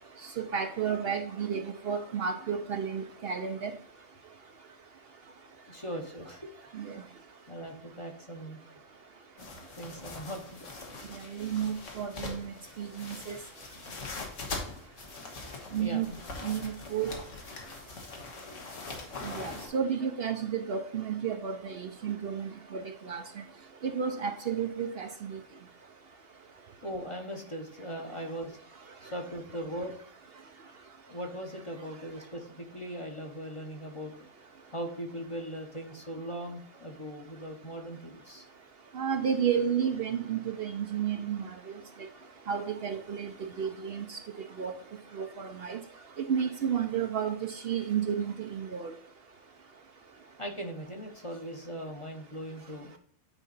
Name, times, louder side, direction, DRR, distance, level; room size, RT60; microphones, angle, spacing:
voice 1, 0.4-3.7 6.8-7.0 11.1-13.4 15.7-16.1 16.4-17.1 19.2-23.2 23.8-25.4 38.9-41.5 42.5-44.2 44.6-44.7 45.1-45.8 46.3-48.9, right 7 dB, 55° right, 6 dB, 0.8 m, -32 dB
voice 2, 5.7-6.6 7.5-8.6 9.7-10.8 15.8-16.1 26.8-28.6 29.0-29.9 31.1-34.1 34.7-38.5 50.4-52.9, equal, 25° left, 2 dB, 1.0 m, -39 dB
sound 1, 9.4-19.7, left 3 dB, 75° left, 1.8 m, -42 dB
9.3 x 4.1 x 4.0 m, 0.62 s
omnidirectional pair, 1.3 m